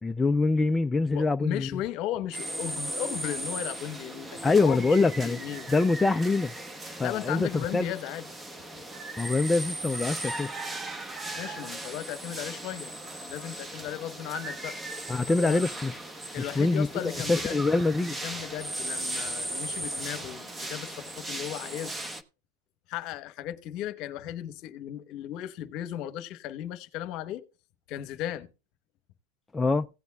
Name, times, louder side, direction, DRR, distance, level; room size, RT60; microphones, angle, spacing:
voice 1, 0.0-1.7 4.4-5.4 5.7-6.5 6.9-7.9 9.2-10.5 15.1-16.0 16.4-18.2 29.5-29.9, left 3 dB, 10° left, 0.4 m, -25 dB
voice 2, 1.1-5.7 7.0-8.3 11.3-14.7 15.3-15.6 16.3-17.6 18.2-22.1 22.9-27.4 27.9-28.5, left 12 dB, 50° left, 1.0 m, -36 dB
sound 1, 2.3-22.2, right 1 dB, 10° right, 1.0 m, -37 dB
16.5 x 8.2 x 2.3 m
supercardioid pair, 125°, 0 cm